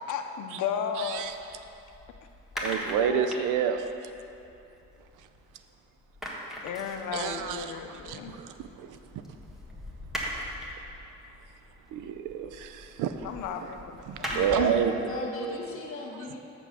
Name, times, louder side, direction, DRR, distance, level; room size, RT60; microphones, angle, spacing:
voice 1, 0.1-1.3 2.5-3.3 6.6-8.3 13.2-14.4, left 7 dB, 80° left, 5 dB, 0.6 m, -34 dB
sound 1, 1.0-5.7 5.9-14.8, equal, ahead, 1.4 m, -40 dB
voice 2, 1.0-1.3 2.6-4.1 5.2-5.3 7.1-9.2 11.9-13.3 13.6-13.7 14.1-14.9, right 8 dB, 90° right, 9 dB, 0.6 m, -30 dB
voice 3, 14.3-16.4, left 2 dB, 45° left, -1 dB, 1.8 m, -36 dB
6.2 x 6.1 x 6.9 m, 2.8 s
cardioid pair, 90°, 30 cm